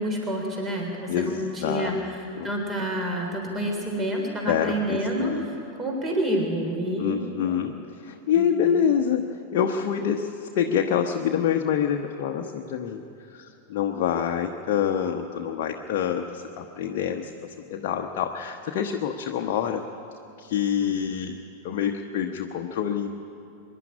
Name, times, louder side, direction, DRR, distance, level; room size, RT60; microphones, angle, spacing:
voice 1, 0.0-2.0 2.4-7.3 8.4-8.5 20.8-21.0, right 1 dB, 20° right, 1 dB, 3.7 m, -28 dB
voice 2, 1.1-2.5 4.4-5.5 7.0-17.3 17.7-19.8 20.4-21.4 21.6-23.1, left 8 dB, 45° left, 3 dB, 1.0 m, -26 dB
24.0 x 11.0 x 9.8 m, 2.8 s
figure-of-eight pair, 90°, 0 cm